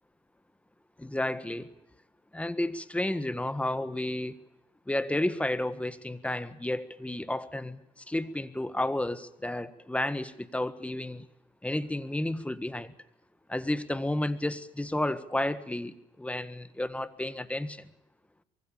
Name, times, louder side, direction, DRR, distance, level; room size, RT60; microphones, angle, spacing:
voice 1, 1.0-1.7 2.3-4.4 4.9-11.2 11.6-12.9 13.5-17.9, left 1 dB, 5° left, 13 dB, 1.6 m, -32 dB
25.0 x 23.5 x 7.2 m, 0.85 s
cardioid pair, 110°, 17 cm